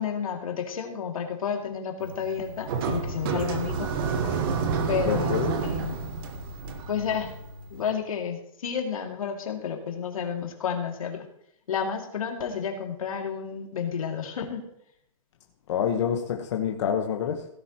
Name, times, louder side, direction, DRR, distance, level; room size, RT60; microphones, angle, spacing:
voice 1, 0.0-3.9 4.2-4.3 4.9-5.4 5.6-6.0 6.9-7.3 7.7-11.3 11.7-14.6, left 7 dB, 85° left, 2.5 m, -31 dB
sound 1, 2.0-7.9, right 5 dB, 40° right, 1.4 m, -30 dB
voice 2, 5.0-5.6 15.7-17.5, left 8 dB, 55° left, 1.3 m, -27 dB
17.0 x 11.0 x 3.0 m
hypercardioid pair, 155°, 18 cm